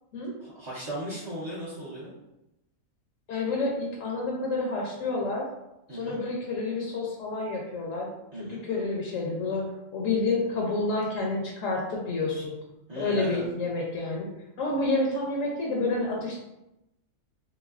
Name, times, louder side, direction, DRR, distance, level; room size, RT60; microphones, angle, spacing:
voice 1, 0.4-2.1 5.9-6.2 8.3-8.6 12.9-13.4, right 1 dB, 35° right, -9 dB, 0.4 m, -36 dB
voice 2, 3.3-5.5 5.9-8.1 8.4-9.6 9.9-12.5 13.0-14.3 14.6-16.4, left 3 dB, 70° left, -2 dB, 1.0 m, -29 dB
3.1 x 3.1 x 2.4 m, 0.90 s
omnidirectional pair, 1.4 m